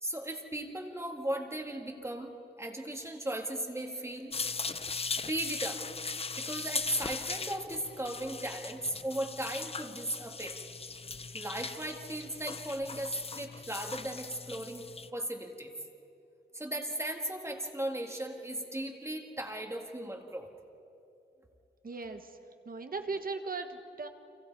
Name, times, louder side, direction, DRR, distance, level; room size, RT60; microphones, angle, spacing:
voice 1, 0.0-4.4 5.3-5.9 6.4-10.6 11.3-14.8 15.1-15.7 16.5-20.5, right 1 dB, 15° right, 2 dB, 1.9 m, -37 dB
sound 1, 4.3-15.1, left 4 dB, 30° left, 0.6 m, -39 dB
voice 2, 21.8-22.4 22.6-24.1, right 4 dB, 50° right, 7 dB, 1.5 m, -38 dB
30.0 x 27.0 x 4.7 m, 2.7 s
wide cardioid pair, 140°, 19 cm